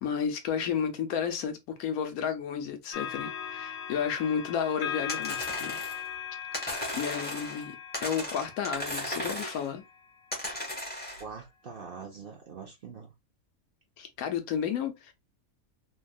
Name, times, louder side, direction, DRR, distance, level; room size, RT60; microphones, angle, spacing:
voice 1, 0.0-5.8 6.9-9.8 14.0-15.1, left 7 dB, 85° left, 1.2 m, -32 dB
sound 1, 2.9-10.4 11.1-11.3, left 9 dB, 70° left, 1.0 m, -39 dB
sound 2, 5.1-6.1 6.5-7.6 7.9-9.7 10.3-11.2, left 1 dB, 10° left, 0.7 m, -36 dB
voice 2, 11.2-13.1, right 5 dB, 55° right, 0.6 m, -43 dB
3.4 x 2.3 x 2.3 m
omnidirectional pair, 1.5 m